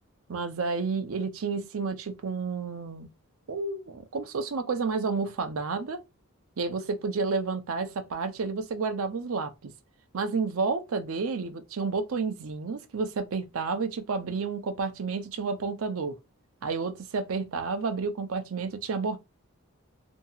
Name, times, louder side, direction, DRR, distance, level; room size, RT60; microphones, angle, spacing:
voice 1, 0.3-3.1 3.5-6.0 6.6-9.7 10.1-16.2 16.6-19.2, right 4 dB, 70° right, 0.5 m, -30 dB
2.7 x 2.7 x 2.3 m
head